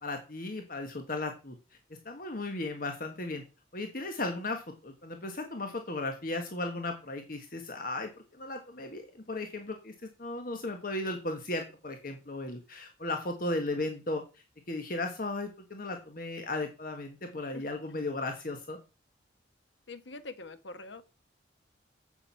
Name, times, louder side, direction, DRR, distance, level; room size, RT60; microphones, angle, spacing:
voice 1, 0.0-1.5 2.0-3.4 3.7-18.8, left 2 dB, 50° left, 5 dB, 1.4 m, -36 dB
voice 2, 19.9-21.0, left 3 dB, 75° left, 11 dB, 1.2 m, -44 dB
8.0 x 7.3 x 5.6 m, 0.32 s
head